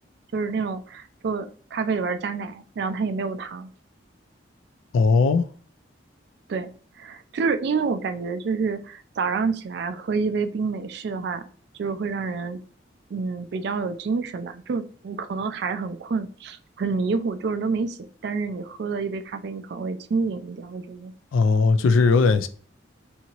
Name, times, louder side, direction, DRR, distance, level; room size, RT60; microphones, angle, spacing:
voice 1, 0.3-3.7 6.5-6.7 7.0-11.4 11.8-12.6 13.1-21.1, right 4 dB, 55° right, 0.3 m, -28 dB
voice 2, 4.9-5.4 21.3-22.5, left 4 dB, 85° left, 0.3 m, -18 dB
2.8 x 2.6 x 2.8 m
head